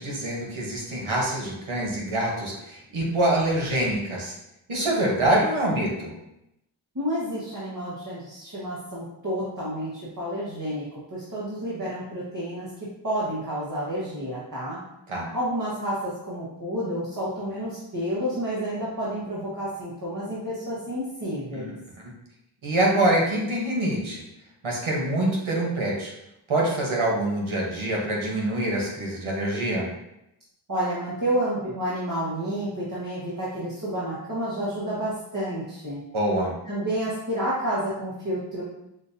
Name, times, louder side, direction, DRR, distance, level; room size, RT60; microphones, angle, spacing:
voice 1, 0.0-4.4 4.7-6.2 15.1-15.3 21.5-22.1 22.6-24.2 24.6-26.1 26.5-29.9 36.1-36.6, right 1 dB, 90° right, -2 dB, 1.1 m, -25 dB
voice 2, 6.9-10.8 11.1-12.7 13.0-14.8 15.3-21.7 30.7-36.0 36.7-38.6, equal, 40° right, -9 dB, 1.4 m, -30 dB
6.2 x 2.5 x 2.7 m, 0.85 s
wide cardioid pair, 40°, 47 cm